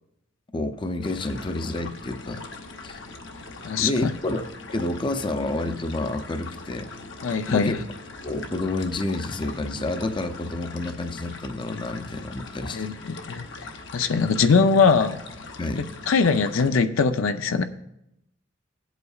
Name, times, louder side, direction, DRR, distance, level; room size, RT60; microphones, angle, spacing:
voice 1, 0.5-2.4 2.8-3.0 3.8-4.4 4.7-6.9 7.5-7.7 8.2-12.9 14.0-14.1 15.6-15.9, left 2 dB, 25° left, 8 dB, 0.5 m, -29 dB
sound 1, 1.0-16.7, left 3 dB, 65° left, 0.9 m, -41 dB
voice 2, 3.6-4.1 7.2-7.8 12.7-13.5 13.9-15.2 16.1-17.6, left 5 dB, 85° left, 9 dB, 0.6 m, -21 dB
17.5 x 8.1 x 2.4 m, 0.82 s
head